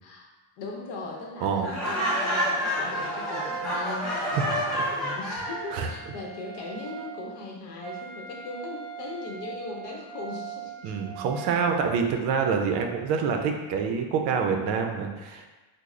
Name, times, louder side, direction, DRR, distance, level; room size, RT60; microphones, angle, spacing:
voice 1, 0.6-10.9, left 3 dB, 65° left, -1 dB, 0.8 m, -39 dB
voice 2, 1.4-1.8 4.1-4.5 4.7-4.8 5.7-5.9 10.8-15.5, right 6 dB, 65° right, 4 dB, 0.5 m, -27 dB
Laughter, 1.6-5.7, equal, ahead, 0.3 m, -28 dB
Wind instrument woodwind instrument, 1.7-11.7, right 10 dB, 25° right, 0.7 m, -41 dB
3.1 x 2.0 x 3.6 m, 1.2 s
cardioid pair, 170°, 43 cm